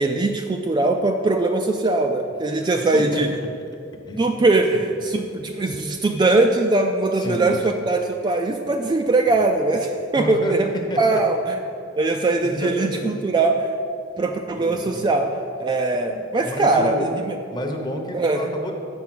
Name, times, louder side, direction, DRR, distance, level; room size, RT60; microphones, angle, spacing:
voice 1, 0.0-3.3 4.2-10.7 11.0-11.6 12.0-13.7 14.2-15.3 15.6-16.9 17.3-17.4 18.1-18.4, right 2 dB, 20° right, 4 dB, 0.3 m, -21 dB
voice 2, 2.6-3.5 4.1-4.3 7.2-7.6 10.2-11.2 12.4-13.1 14.5-15.1 16.1-17.1 17.5-18.7, left 1 dB, 20° left, 3 dB, 0.8 m, -30 dB
7.1 x 5.6 x 6.0 m, 2.5 s
head